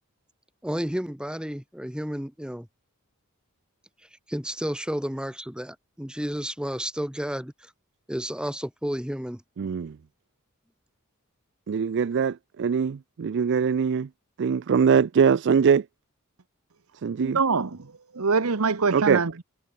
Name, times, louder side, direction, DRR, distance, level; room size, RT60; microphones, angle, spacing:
voice 1, 0.6-2.7 4.3-7.7 8.1-9.4, equal, 5° right, 1.3 m, -31 dB
voice 2, 9.6-10.0 11.7-14.1 14.4-15.8 17.0-17.4 18.9-19.2, right 6 dB, 55° right, 0.4 m, -22 dB
voice 3, 17.2-19.4, right 4 dB, 90° right, 1.0 m, -25 dB
head